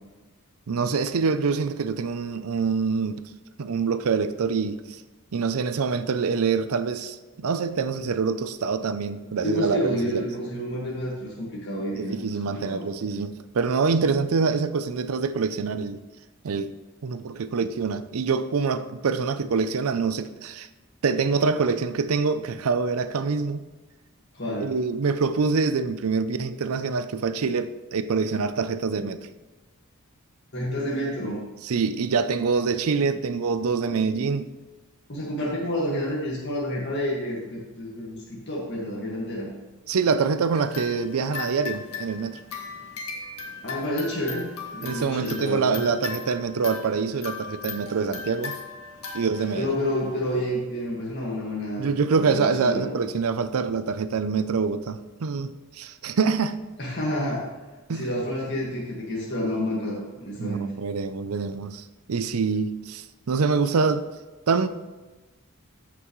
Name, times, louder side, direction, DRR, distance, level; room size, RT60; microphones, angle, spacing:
voice 1, 0.7-3.2 3.6-5.0 5.3-10.2 11.9-16.0 16.4-16.7 17.0-20.7 21.0-23.6 24.6-29.3 31.6-34.5 39.9-42.4 44.8-48.5 49.1-49.7 51.8-56.5 57.9-58.1 60.4-64.1 64.5-64.7, right 5 dB, 80° right, 0.5 m, -25 dB
voice 2, 9.4-12.1 12.4-12.8 24.3-24.7 30.5-31.4 35.1-39.5 43.6-45.8 49.6-52.9 56.8-57.5 57.9-60.6, equal, 50° left, 1.8 m, -29 dB
sound 1, 40.6-50.6, left 5 dB, 90° left, 1.8 m, -38 dB
14.0 x 6.0 x 3.1 m
head